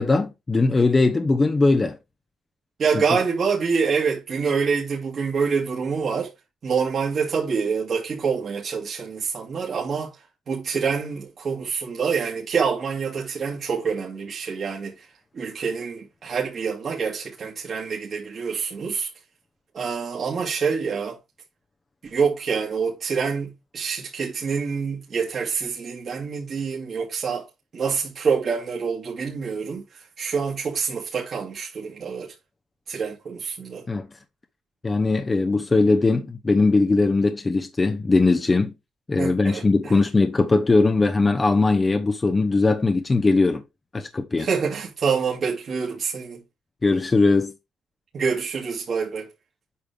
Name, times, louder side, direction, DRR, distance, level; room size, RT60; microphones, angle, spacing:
voice 1, 0.0-2.0 2.9-3.0 33.9-34.1 34.8-38.7 39.1-43.6 43.9-44.5 46.8-47.5, left 3 dB, 25° left, 0.9 m, -20 dB
voice 2, 2.8-6.3 6.6-15.1 15.3-19.1 19.7-21.2 22.0-27.5 27.7-32.3 32.9-33.9 39.2-40.0 44.4-46.4 48.1-49.3, right 5 dB, 50° right, 2.2 m, -26 dB
8.5 x 5.5 x 3.4 m
cardioid pair, 90°, 0 cm